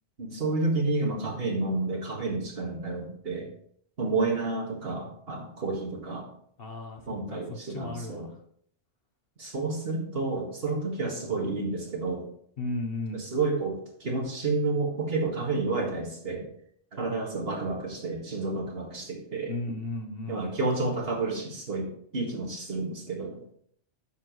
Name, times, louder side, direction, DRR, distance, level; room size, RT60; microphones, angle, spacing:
voice 1, 0.2-3.5 4.0-6.3 7.1-8.3 9.4-12.3 13.1-16.5 16.9-19.5 20.3-23.4, right 3 dB, 50° right, 0 dB, 2.0 m, -30 dB
voice 2, 6.6-8.4 12.6-13.3 19.5-20.5, left 2 dB, 55° left, 3 dB, 1.2 m, -35 dB
9.5 x 7.1 x 3.1 m, 0.65 s
omnidirectional pair, 1.3 m